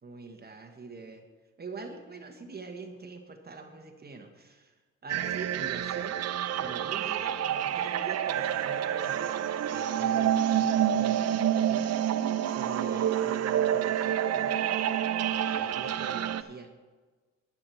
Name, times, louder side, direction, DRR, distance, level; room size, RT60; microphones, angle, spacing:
voice 1, 0.0-1.2 1.6-6.2 6.6-12.1 12.4-14.8 15.2-16.7, right 3 dB, 30° right, 4 dB, 1.3 m, -44 dB
sound 1, 5.1-16.4, right 10 dB, 55° right, 0.6 m, -28 dB
12.0 x 9.6 x 4.5 m, 1.3 s
cardioid pair, 90°, 30 cm